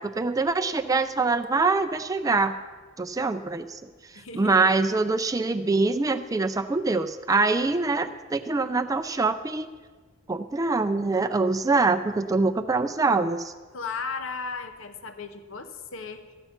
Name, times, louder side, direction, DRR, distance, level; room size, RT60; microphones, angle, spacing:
voice 1, 0.0-2.6 3.0-3.8 4.3-9.7 10.3-13.5, right 3 dB, 15° right, 8 dB, 0.4 m, -24 dB
voice 2, 4.2-4.8 13.7-16.3, left 4 dB, 65° left, 8 dB, 0.8 m, -36 dB
13.5 x 9.0 x 5.8 m, 1.4 s
head